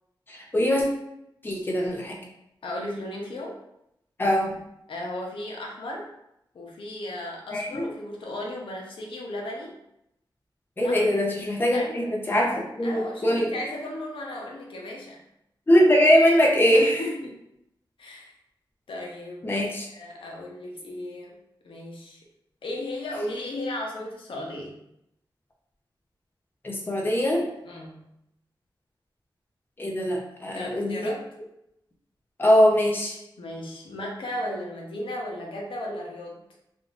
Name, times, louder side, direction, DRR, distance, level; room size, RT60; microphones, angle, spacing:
voice 1, 0.3-0.8 1.4-2.2 4.2-4.6 7.5-7.8 10.8-13.5 15.7-17.0 19.4-19.9 26.6-27.4 29.8-31.1 32.4-33.2, equal, 25° left, -1 dB, 0.5 m, -22 dB
voice 2, 2.6-3.6 4.9-6.1 6.5-9.7 10.8-11.0 11.7-12.3 12.8-15.2 16.7-17.4 18.0-18.3 18.9-19.5 19.9-21.3 21.6-22.2 22.6-24.7 27.7-28.0 30.5-31.3 33.4-36.4, left 1 dB, 90° left, -1 dB, 0.7 m, -35 dB
3.7 x 2.5 x 2.4 m, 0.80 s
wide cardioid pair, 150°, 9 cm